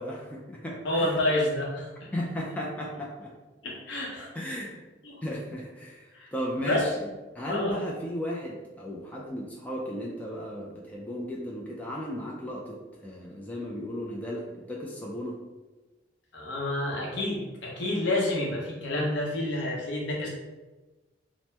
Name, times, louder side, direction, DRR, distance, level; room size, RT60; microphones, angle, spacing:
voice 1, 0.0-1.2 2.1-3.3 4.3-4.8 5.2-6.9 7.3-15.4, equal, 10° left, -4 dB, 0.3 m, -35 dB
voice 2, 0.8-1.9 3.6-4.3 5.0-5.2 6.1-6.3 6.6-6.9 7.5-7.8 16.3-20.3, left 1 dB, 70° left, -2 dB, 0.8 m, -29 dB
2.8 x 2.0 x 3.3 m, 1.2 s
head